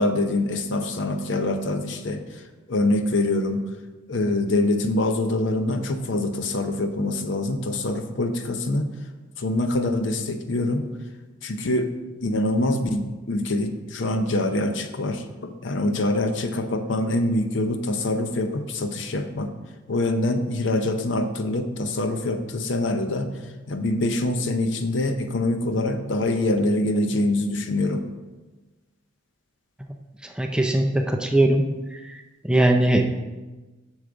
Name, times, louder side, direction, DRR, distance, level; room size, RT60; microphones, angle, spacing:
voice 1, 0.0-3.6 4.1-8.9 9.4-10.8 11.4-11.9 12.2-19.5 19.9-28.0, left 2 dB, 60° left, 7 dB, 0.6 m, -25 dB
voice 2, 30.4-31.7 31.9-32.0 32.4-33.1, right 1 dB, 5° right, 3 dB, 0.4 m, -20 dB
6.9 x 6.4 x 3.9 m, 1.2 s
head